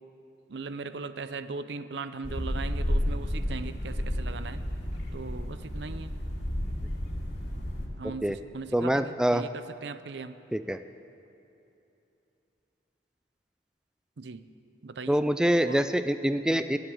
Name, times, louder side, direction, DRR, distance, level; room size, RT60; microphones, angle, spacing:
voice 1, 0.5-4.6 5.1-6.1 8.0-10.4 14.2-14.5 14.8-15.2 15.6-15.8, right 4 dB, 75° right, 12 dB, 0.6 m, -39 dB
sound 1, 2.2-7.9, equal, 70° left, 2.5 m, -32 dB
voice 2, 8.7-9.4 10.5-10.8 15.1-16.8, right 1 dB, 5° right, 10 dB, 0.3 m, -25 dB
17.0 x 7.9 x 8.6 m, 2.9 s
head